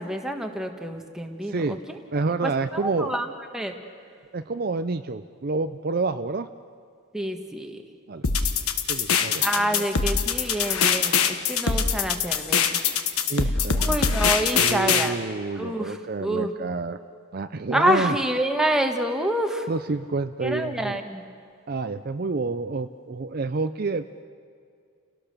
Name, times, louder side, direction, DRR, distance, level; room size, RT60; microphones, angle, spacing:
voice 1, 0.0-1.8 2.4-3.3 3.5-3.7 7.1-7.8 9.4-12.8 13.8-15.2 15.6-16.5 17.7-19.7 20.4-21.3, right 1 dB, ahead, 3 dB, 1.3 m, -27 dB
voice 2, 1.4-1.8 2.1-3.1 4.3-6.5 8.1-8.3 8.9-9.9 13.3-14.0 14.6-17.0 17.3-18.2 19.7-21.0 21.7-24.0, right 3 dB, 40° right, 9 dB, 0.5 m, -28 dB
sound 1, 8.2-15.1, left 6 dB, 75° left, 1.2 m, -23 dB
30.0 x 17.5 x 6.7 m, 2.3 s
head